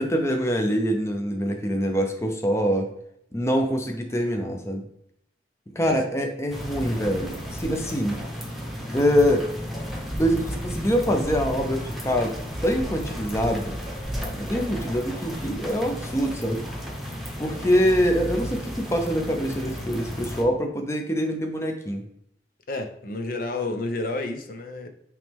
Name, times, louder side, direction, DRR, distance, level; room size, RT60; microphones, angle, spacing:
voice 1, 0.0-2.9 3.3-4.8 5.7-8.2 8.9-9.4 10.2-12.3 12.6-13.8 14.3-16.6 17.4-22.0, equal, 15° left, 3 dB, 0.6 m, -24 dB
sound 1, 6.5-20.4, equal, ahead, 1.0 m, -33 dB
voice 2, 22.7-24.9, left 2 dB, 50° left, 5 dB, 0.6 m, -30 dB
8.9 x 3.1 x 3.5 m, 0.73 s
head